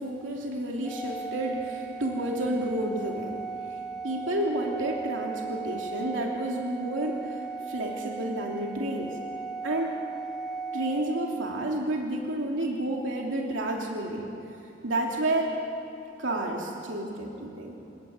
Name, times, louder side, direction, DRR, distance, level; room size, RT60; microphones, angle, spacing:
voice 1, 0.0-3.4 3.7-9.2 9.6-10.0 10.7-14.3 14.8-15.6 16.2-17.8, right 1 dB, 80° right, 0 dB, 2.9 m, -30 dB
Organ, 0.8-11.7, right 4 dB, ahead, 2.0 m, -37 dB
28.5 x 17.0 x 8.8 m, 2.9 s
head